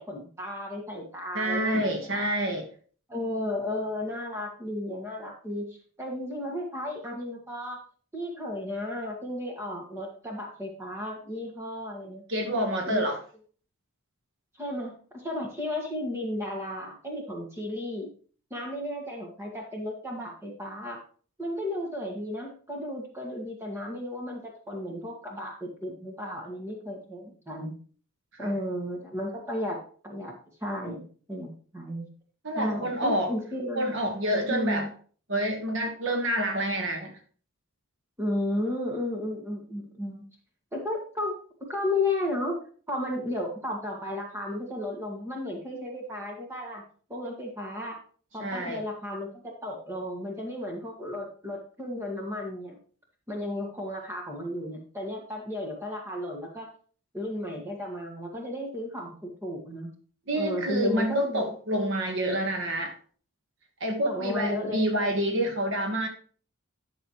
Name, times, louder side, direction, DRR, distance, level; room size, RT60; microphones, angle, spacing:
voice 1, 0.0-2.3 3.1-7.8 8.1-12.2 12.8-13.1 14.6-18.1 18.5-21.0 21.4-27.8 28.4-30.3 30.6-32.1 32.5-33.9 34.5-34.9 38.2-40.2 40.7-41.3 41.7-42.6 42.9-46.8 47.1-48.0 48.3-52.8 53.3-56.7 57.1-59.9 60.3-61.4 64.0-65.1, left 1 dB, 10° right, -1 dB, 1.8 m, -34 dB
voice 2, 1.3-2.6 12.3-13.2 28.3-28.5 32.4-33.3 33.7-34.9 35.3-37.1 48.4-48.8 60.3-62.9 63.8-66.1, right 1 dB, 55° right, 3 dB, 1.4 m, -28 dB
11.5 x 6.7 x 3.1 m, 0.43 s
head